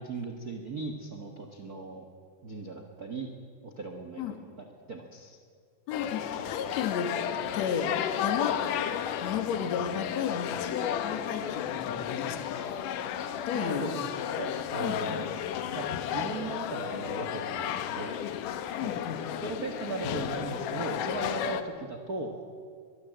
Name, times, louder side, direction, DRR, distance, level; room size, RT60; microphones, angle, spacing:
voice 1, 0.0-2.1 2.4-3.3 3.6-4.4 4.9-5.4 13.5-14.0 14.4-15.3 15.7-18.2 18.8-18.9 19.4-22.4, right 3 dB, 90° right, 4 dB, 0.8 m, -37 dB
sound 1, 5.9-21.6, left 9 dB, 70° left, 2.3 m, -33 dB
voice 2, 5.9-7.2 7.5-7.9 8.2-8.6 9.2-12.5 12.9-13.0 13.5-13.9 14.8-15.2 18.8-19.2, left 8 dB, 55° left, 7 dB, 2.5 m, -33 dB
23.0 x 21.0 x 7.9 m, 2.1 s
omnidirectional pair, 4.3 m